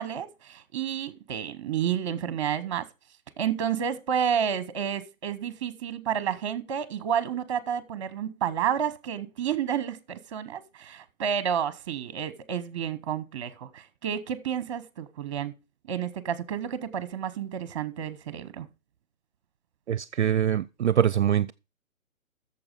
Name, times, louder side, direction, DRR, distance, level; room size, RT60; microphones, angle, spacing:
voice 1, 0.0-2.9 3.4-15.5 15.9-18.7, right 8 dB, 25° right, 0.8 m, -30 dB
voice 2, 19.9-21.5, right 9 dB, 55° right, 0.5 m, -24 dB
8.6 x 7.0 x 6.6 m
hypercardioid pair, 160°, 41 cm